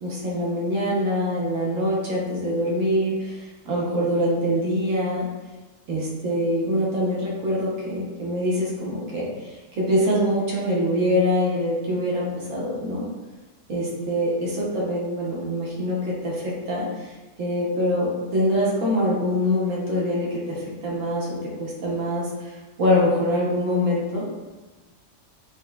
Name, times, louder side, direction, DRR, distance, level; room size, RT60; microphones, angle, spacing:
voice 1, 0.0-5.3 5.9-13.1 13.7-17.1 17.4-22.5 22.8-24.3, equal, 70° right, -5 dB, 1.2 m, -24 dB
5.8 x 2.0 x 2.2 m, 1.2 s
omnidirectional pair, 1.4 m